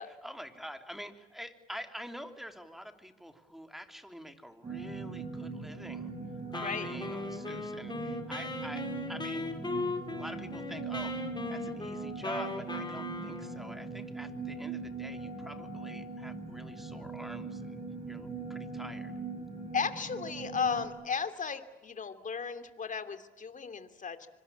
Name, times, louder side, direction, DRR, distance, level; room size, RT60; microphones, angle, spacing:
voice 1, 0.0-6.1 6.5-9.5 10.1-11.2 11.5-19.1, equal, ahead, 7 dB, 3.2 m, -46 dB
sound 1, 4.6-20.8, right 4 dB, 35° right, 7.3 m, -41 dB
Wind instrument woodwind instrument, 6.5-13.7, left 3 dB, 20° left, 4.9 m, -38 dB
voice 2, 19.7-24.3, left 6 dB, 40° left, 10 dB, 2.8 m, -35 dB
25.5 x 24.5 x 8.6 m, 1.0 s
cardioid pair, 90°, 20 cm